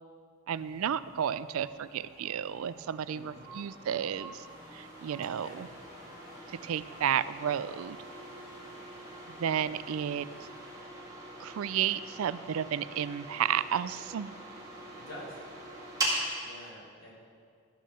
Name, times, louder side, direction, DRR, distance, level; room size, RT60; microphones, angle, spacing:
sound 1, 0.5-16.3, right 1 dB, 15° right, 1.8 m, -42 dB
voice 1, 0.5-4.4 4.7-5.7 6.5-8.0 9.4-10.3 11.4-14.3, right 9 dB, 80° right, 16 dB, 0.3 m, -32 dB
voice 2, 3.1-3.6 5.4-5.6 15.0-15.4 16.4-17.1, equal, 80° left, -6 dB, 3.5 m, -47 dB
sound 2, 4.4-10.8, left 1 dB, 40° left, 1.3 m, -60 dB
12.0 x 6.3 x 6.8 m, 2.2 s
head